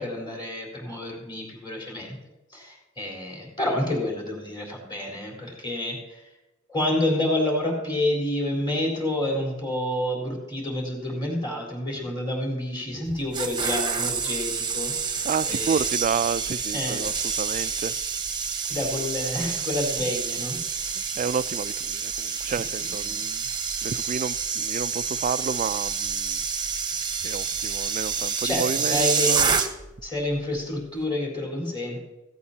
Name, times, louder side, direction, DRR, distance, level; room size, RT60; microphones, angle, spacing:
voice 1, 0.0-2.2 2.5-6.2 6.7-14.9 15.4-15.9 16.7-17.1 18.6-21.1 22.7-23.1 28.4-29.4 30.0-32.0, left 1 dB, 20° left, -2 dB, 4.0 m, -29 dB
sound 1, 13.1-30.0 30.3-30.6, right 6 dB, 20° right, 1.0 m, -28 dB
voice 2, 15.2-18.0 21.0-23.4 23.8-26.4 27.2-29.5, right 6 dB, 35° right, 16 dB, 0.3 m, -30 dB
16.5 x 15.5 x 2.8 m, 1.0 s
head